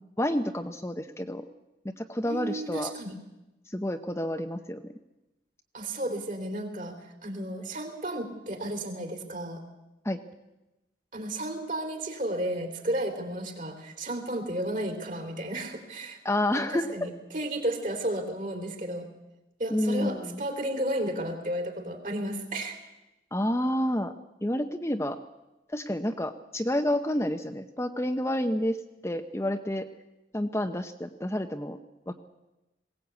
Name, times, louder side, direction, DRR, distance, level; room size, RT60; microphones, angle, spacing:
voice 1, 0.2-1.4 1.8-2.9 3.7-4.8 10.0-10.2 16.2-16.9 19.7-20.4 23.3-24.1 24.4-25.2 25.7-29.9 30.3-31.8 32.1-32.2, left 1 dB, 15° left, 6 dB, 0.8 m, -29 dB
voice 2, 2.2-3.1 5.7-9.6 11.1-16.2 16.5-19.1 19.6-22.8, right 1 dB, 45° right, 4 dB, 3.3 m, -33 dB
21.0 x 17.5 x 8.3 m, 1.0 s
head